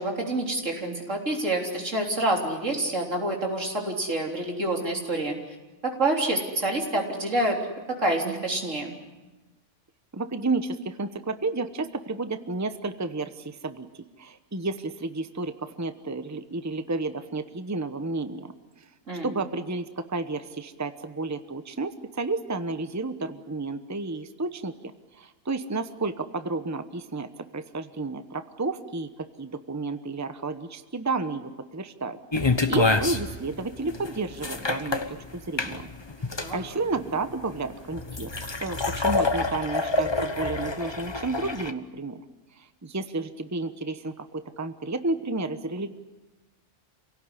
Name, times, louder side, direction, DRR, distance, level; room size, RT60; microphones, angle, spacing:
voice 1, 0.0-5.3 5.8-7.6 7.9-8.9 19.1-19.3 36.4-36.6, right 1 dB, 85° right, 1 dB, 4.1 m, -27 dB
voice 2, 10.1-18.5 19.2-24.7 25.2-35.9 36.2-36.3 36.5-38.3 38.6-42.2 42.6-45.9, right 3 dB, 15° right, 10 dB, 0.9 m, -31 dB
sound 1, 32.3-41.7, left 3 dB, 25° left, 1.0 m, -27 dB
28.0 x 17.5 x 9.9 m, 1.1 s
omnidirectional pair, 1.3 m